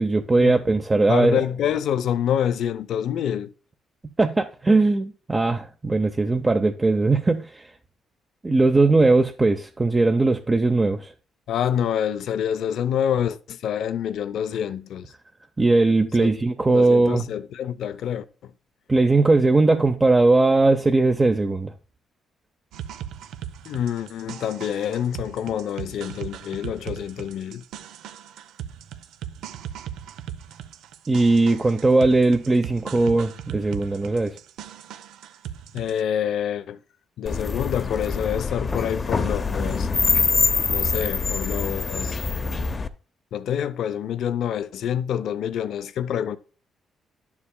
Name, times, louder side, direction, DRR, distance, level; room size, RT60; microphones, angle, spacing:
voice 1, 0.0-1.4 4.2-7.7 8.4-11.1 15.6-17.3 18.9-21.7 31.1-34.4, right 3 dB, 20° right, 0.6 m, -19 dB
voice 2, 0.9-3.5 11.5-15.1 16.2-16.3 16.7-18.5 23.7-27.6 35.7-36.8 37.2-39.9 40.7-42.2 43.3-46.4, left 9 dB, 75° left, 0.5 m, -27 dB
sound 1, 22.7-36.0, right 10 dB, 85° right, 0.6 m, -38 dB
sound 2, 37.3-42.9, left 4 dB, 35° left, 0.6 m, -24 dB
11.0 x 7.2 x 2.2 m
cardioid pair, 90°, 0 cm